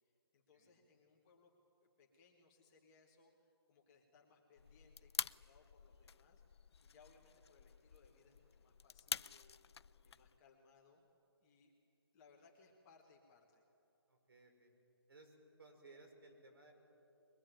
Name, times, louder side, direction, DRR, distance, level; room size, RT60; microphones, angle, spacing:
voice 1, 0.0-1.5 1.8-9.6 10.0-11.1 11.4-11.7 12.1-13.6, left 4 dB, 15° left, -2 dB, 1.5 m, -68 dB
sound 1, 4.6-10.4, left 6 dB, 90° left, 0.5 m, -47 dB
voice 2, 14.1-14.7 15.1-16.7, right 2 dB, 65° right, 4 dB, 5.7 m, -61 dB
22.5 x 22.0 x 9.0 m, 2.7 s
hypercardioid pair, 175°, 13 cm